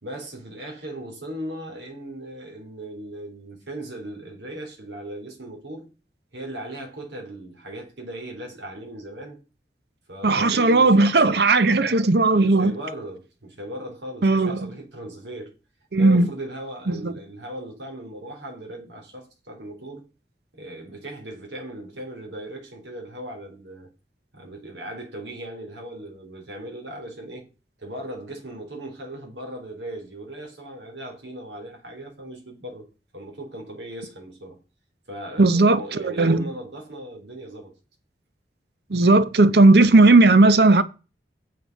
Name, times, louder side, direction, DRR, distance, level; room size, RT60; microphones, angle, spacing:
voice 1, 0.0-5.9 6.3-9.4 10.1-15.5 16.0-20.1 20.5-23.9 24.3-27.5 27.8-32.9 33.1-34.6 35.1-37.8, right 1 dB, 80° right, 3.7 m, -38 dB
voice 2, 10.2-12.7 14.2-14.7 15.9-16.3 16.9-17.1 35.4-36.4 38.9-40.8, right 2 dB, 65° right, 0.8 m, -16 dB
9.3 x 7.7 x 5.3 m
head